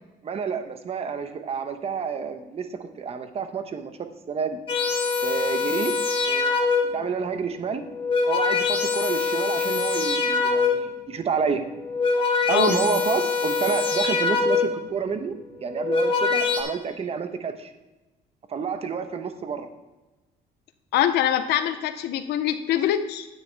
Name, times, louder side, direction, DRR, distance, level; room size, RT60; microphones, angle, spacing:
voice 1, 0.2-3.9 4.3-4.6 5.2-5.9 6.3-6.5 6.9-7.8 8.3-11.6 12.5-15.3 15.6-17.7 18.5-19.7, right 6 dB, 35° right, 8 dB, 0.9 m, -29 dB
sound 1, 4.7-7.1 7.8-11.0 11.7-14.9 15.6-16.6, left 4 dB, 30° left, 2.0 m, -24 dB
voice 2, 20.9-23.3, left 10 dB, 80° left, 9 dB, 0.7 m, -24 dB
10.0 x 9.1 x 3.4 m, 1.1 s
cardioid pair, 110°, 17 cm